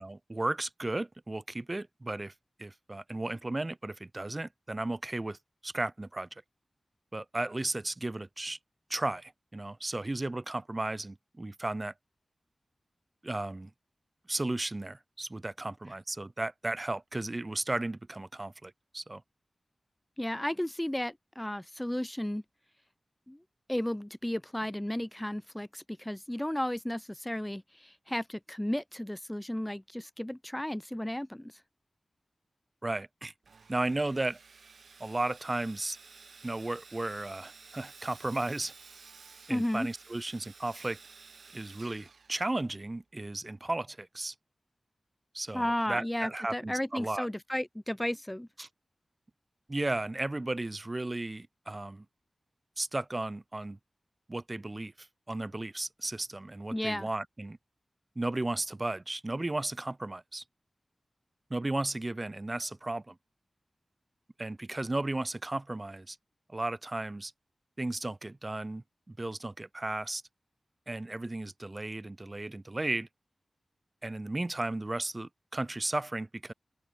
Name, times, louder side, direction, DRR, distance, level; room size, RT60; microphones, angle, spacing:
voice 1, 0.0-2.3 2.6-5.4 5.6-6.3 7.1-8.6 8.9-11.9 13.2-13.7 14.3-19.2 32.8-33.3 33.7-34.4 35.0-36.0 36.4-38.7 39.5-41.0 41.5-44.3 45.3-47.3 48.6-48.7 49.7-52.0 52.8-53.8 54.3-57.6 58.2-60.4 61.5-63.2 64.4-66.2 66.5-67.3 67.8-70.2 70.9-73.1 74.0-76.5, right 2 dB, 30° right, 0.8 m, -34 dB
voice 2, 20.2-22.4 23.3-23.4 23.7-31.5 39.5-39.9 45.5-48.5 56.7-57.1, left 1 dB, 10° left, 0.3 m, -33 dB
Sawing, 33.4-42.9, right 5 dB, 85° right, 1.3 m, -54 dB
open air
wide cardioid pair, 100°, 0 cm